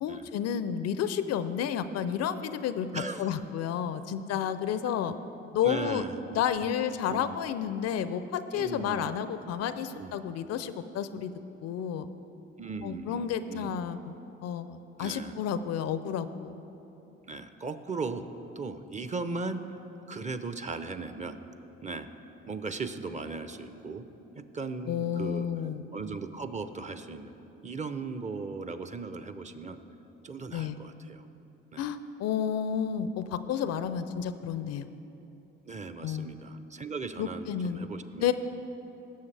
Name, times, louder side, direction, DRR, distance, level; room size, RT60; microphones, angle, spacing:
voice 1, 0.0-5.1 5.5-6.0 6.3-11.3 11.6-12.1 12.8-14.1 14.4-16.6 24.9-25.8 30.5-30.8 31.8-34.9 36.0-36.3 37.2-37.8 38.2-38.3, left 8 dB, 60° left, 12 dB, 0.5 m, -31 dB
voice 2, 2.9-3.3 5.6-6.7 7.1-7.3 8.6-9.1 9.9-10.2 12.6-13.8 15.0-15.4 17.2-18.3 18.6-19.6 20.1-21.4 21.8-22.1 22.5-24.0 24.4-25.5 25.9-27.3 27.6-29.8 30.2-31.2 31.7-31.9 35.7-38.3, right 4 dB, 25° right, 10 dB, 0.7 m, -37 dB
16.5 x 6.9 x 3.3 m, 3.0 s
hypercardioid pair, 60°, 29 cm